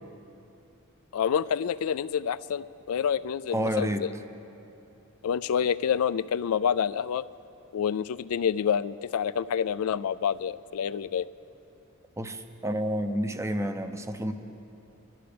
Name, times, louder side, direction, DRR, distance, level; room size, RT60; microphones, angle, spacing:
voice 1, 1.1-3.9 5.2-7.2 7.7-11.3, left 8 dB, 75° left, 16 dB, 0.3 m, -28 dB
voice 2, 3.5-4.1 12.2-14.3, equal, 15° right, 8 dB, 0.6 m, -29 dB
23.5 x 13.0 x 3.4 m, 2.8 s
head